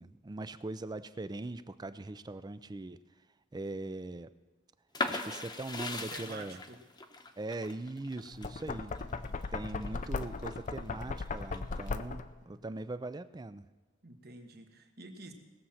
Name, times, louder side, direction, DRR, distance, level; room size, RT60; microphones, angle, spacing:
voice 1, 0.0-3.0 3.5-4.3 5.1-6.6 7.4-9.0 9.5-13.7, right 2 dB, 20° right, 14 dB, 0.4 m, -41 dB
sound 1, 4.9-10.6 11.0-11.9, left 2 dB, 20° left, 0.9 m, -39 dB
voice 2, 6.1-6.8 8.6-9.5 14.0-15.3, right 2 dB, 55° right, 5 dB, 1.4 m, -50 dB
Knock, 8.3-12.4, left 3 dB, 40° left, 0.5 m, -37 dB
19.0 x 7.5 x 5.7 m, 1.3 s
head